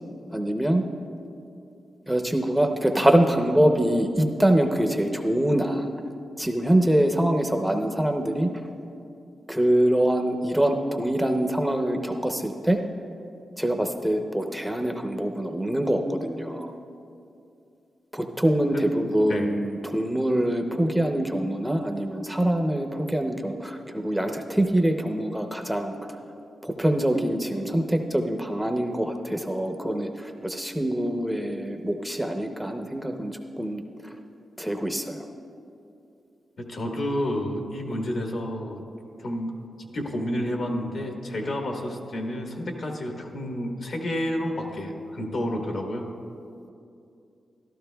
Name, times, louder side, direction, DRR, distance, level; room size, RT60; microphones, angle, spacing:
voice 1, 0.3-0.8 2.1-5.9 6.4-8.5 9.5-12.8 13.6-16.7 18.1-26.0 26.6-34.1 34.6-35.3, right 1 dB, 5° right, 4 dB, 0.6 m, -24 dB
voice 2, 36.6-38.8 39.2-46.1, left 1 dB, 65° left, 2 dB, 1.3 m, -30 dB
14.0 x 12.0 x 2.2 m, 2.6 s
cardioid pair, 80°, 0 cm